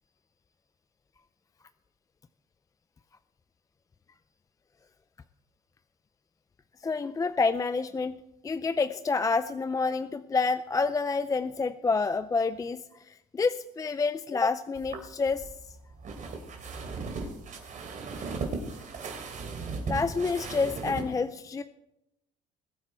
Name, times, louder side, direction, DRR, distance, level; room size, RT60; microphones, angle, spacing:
voice 1, 6.8-8.1 8.4-12.8 13.1-15.5 19.9-21.6, left 4 dB, 20° left, 12 dB, 0.4 m, -28 dB
sound 1, 14.8-21.1, right 4 dB, 50° right, 3.3 m, -37 dB
21.0 x 8.7 x 4.6 m, 0.88 s
cardioid pair, 110°, 17 cm